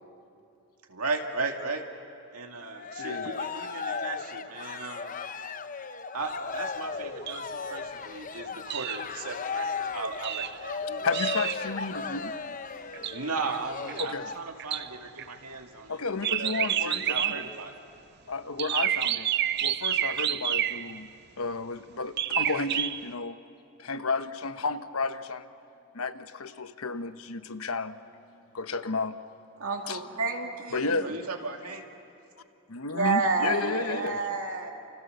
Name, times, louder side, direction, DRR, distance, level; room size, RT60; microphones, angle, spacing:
voice 1, 0.9-1.8 2.3-5.1 6.1-11.1 13.1-16.0 16.3-17.8 31.0-31.8 33.6-34.2, right 3 dB, 90° right, 3 dB, 2.5 m, -36 dB
Cheering, 2.6-14.3, left 5 dB, 35° left, 0.7 m, -36 dB
voice 2, 3.0-3.3 11.0-12.3 14.0-14.3 15.9-17.5 18.3-19.3 19.6-21.1 21.4-23.4 23.8-25.5 25.9-28.0 28.5-29.2 29.9-30.0 30.7-31.2 32.7-34.2, left 4 dB, 75° left, 10 dB, 1.1 m, -32 dB
sound 1, 7.3-7.4 8.7-9.0 10.2-10.6 11.1-11.7 12.9-13.2 13.9-14.1 14.6-14.9 15.2-15.3 16.2-17.6 18.6-21.1 22.2-23.1, right 11 dB, 45° right, 0.5 m, -29 dB
voice 3, 29.6-31.1 32.9-34.7, right 4 dB, 75° right, 1 dB, 2.5 m, -29 dB
29.0 x 29.0 x 6.8 m, 2.7 s
head